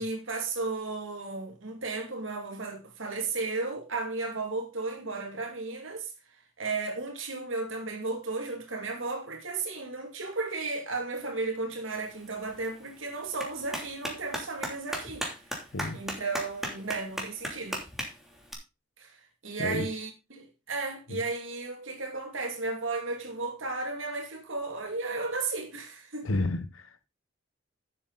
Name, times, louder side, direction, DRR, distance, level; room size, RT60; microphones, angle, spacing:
voice 1, 0.0-6.1 6.6-15.2 15.9-17.8 19.0-26.3, right 3 dB, 70° right, 2.4 m, -34 dB
Clapping, 11.9-18.5, equal, ahead, 3.0 m, -38 dB
voice 2, 26.2-27.1, left 2 dB, 85° left, 1.0 m, -31 dB
12.0 x 7.6 x 4.0 m
head